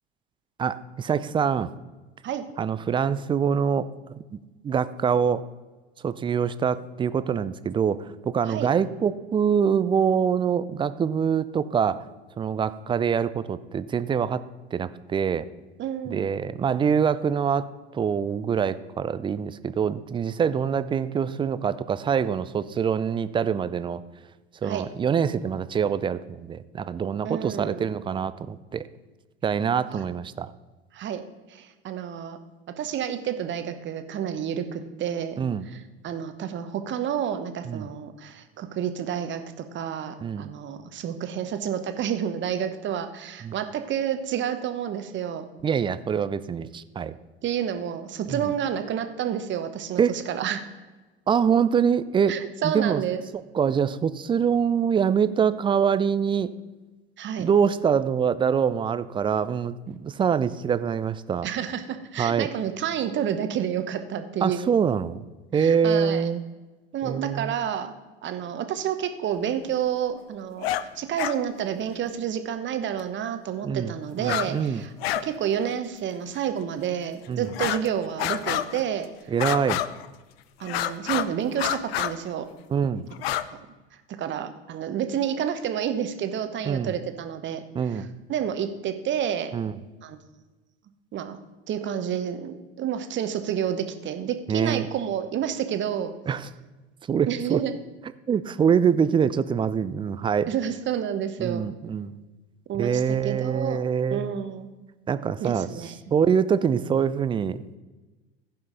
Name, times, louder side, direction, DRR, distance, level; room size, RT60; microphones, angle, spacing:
voice 1, 0.6-1.7 2.6-3.9 4.3-5.4 6.0-12.0 12.4-14.4 14.7-15.5 16.1-24.0 24.6-28.9 29.4-30.5 35.4-35.6 37.6-37.9 40.2-40.5 43.4-43.5 45.6-47.1 48.3-48.4 50.0-50.1 51.3-52.4 52.6-53.0 53.5-56.5 57.4-61.5 62.2-62.5 64.4-65.2 65.5-66.4 67.0-67.5 73.6-73.9 74.2-74.8 77.3-77.5 79.3-79.8 82.7-83.1 86.6-86.9 87.7-88.1 89.5-89.7 94.5-94.9 96.3-96.5 97.1-97.6 98.3-100.5 101.4-102.1 102.8-104.3 105.1-105.7 106.1-107.6, right 7 dB, 15° right, 15 dB, 0.4 m, -24 dB
voice 2, 15.8-16.3 24.6-24.9 27.2-27.8 29.9-30.0 30.9-31.2 31.5-32.4 32.8-35.4 35.6-45.5 47.4-50.6 52.3-53.2 57.2-57.5 61.4-64.7 65.5-66.3 66.9-67.9 68.2-74.9 75.2-79.1 80.6-82.5 84.2-87.6 87.9-89.5 90.0-90.2 91.1-91.4 91.7-96.1 97.3-97.7 100.5-101.7 102.7-103.8 104.1-104.7 105.4-106.0, right 9 dB, 35° right, 9 dB, 1.1 m, -29 dB
sound 1, 70.6-70.9 71.2-71.4 73.0-73.1 74.2-74.5 74.8-75.3 75.6-75.7 76.4-76.5 77.5-77.9 78.2-78.9 79.4-80.1 80.6-81.3 81.6-82.1 83.1-83.5, left 13 dB, 70° left, 0.5 m, -28 dB
15.5 x 5.6 x 3.9 m, 1.2 s
figure-of-eight pair, 75°, 32 cm